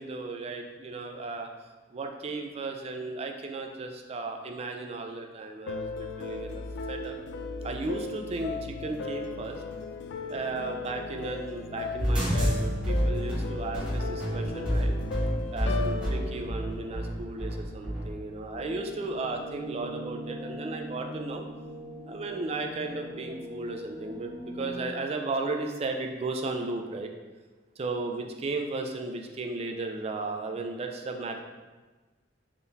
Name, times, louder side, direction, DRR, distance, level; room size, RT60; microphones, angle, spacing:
voice 1, 0.0-1.5 1.9-7.2 7.6-9.6 10.3-15.0 15.5-21.4 22.0-27.1 27.8-31.4, right 3 dB, 35° right, 4 dB, 0.3 m, -35 dB
sound 1, 5.7-17.8, left 3 dB, 75° left, 0.3 m, -37 dB
sound 2, 12.0-18.1, equal, 5° right, 1.1 m, -29 dB
sound 3, 18.5-24.9, right 1 dB, 50° left, 1.4 m, -41 dB
3.7 x 2.7 x 3.3 m, 1.3 s
head